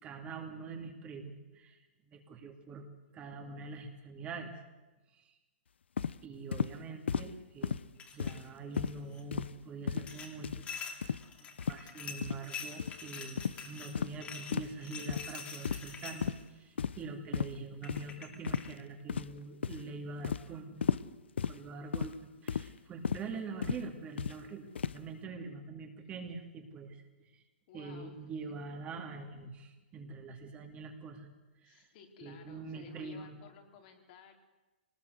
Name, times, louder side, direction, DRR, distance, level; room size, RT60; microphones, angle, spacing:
voice 1, 0.0-2.9 3.1-4.5 5.1-5.3 6.2-7.8 8.1-10.7 11.0-20.8 21.4-24.7 24.9-27.0 27.3-27.4 27.7-31.3 31.6-31.9 32.2-33.3, right 4 dB, 20° right, 3 dB, 2.7 m, -44 dB
sound 1, 6.0-6.2 6.5-6.7 7.1-7.3 7.6-7.9 8.2-8.5 8.8-9.0 9.3-9.5 9.9-10.1 10.4-10.7 11.0-11.2 11.6-11.8 12.2-12.4 12.8-13.0 13.4-13.6 13.9-14.1 14.5-14.7 15.1-15.3 15.6-15.9 16.2-16.4 16.8-17.0 17.3-17.5 17.9-18.0 18.5-18.7 19.1-19.4 19.6-19.9 20.2-20.4 20.8-21.1 21.4-21.6 21.9-22.1 22.5-22.7 23.0-23.2 23.6-23.8 24.2-24.4 24.7-25.0, left 7 dB, 90° left, 0.7 m, -34 dB
sound 2, 8.0-8.4 8.7-9.2 10.1-16.4 17.4-17.5 17.8-18.7, left 6 dB, 20° left, 2.6 m, -45 dB
voice 2, 27.7-28.5 31.6-34.3, left 8 dB, 50° left, 3 dB, 3.8 m, -55 dB
23.5 x 19.5 x 8.1 m, 1.1 s
hypercardioid pair, 140°, 6 cm